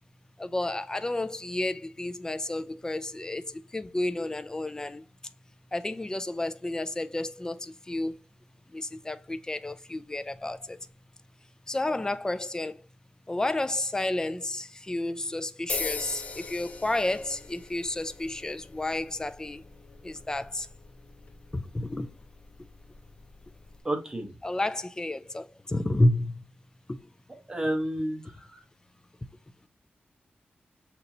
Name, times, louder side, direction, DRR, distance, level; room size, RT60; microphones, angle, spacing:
voice 1, 0.4-5.0 5.7-8.2 8.7-10.8 11.7-12.8 13.3-19.6 20.0-20.7 21.5-22.2 24.4-26.4 26.9-27.1, left 1 dB, 20° left, 0.4 m, -31 dB
sound 1, 15.7-23.8, left 4 dB, 40° left, 0.8 m, -41 dB
voice 2, 23.8-24.3 27.3-28.6, right 1 dB, 20° right, 1.1 m, -31 dB
6.5 x 2.9 x 2.7 m
wide cardioid pair, 110°, 4 cm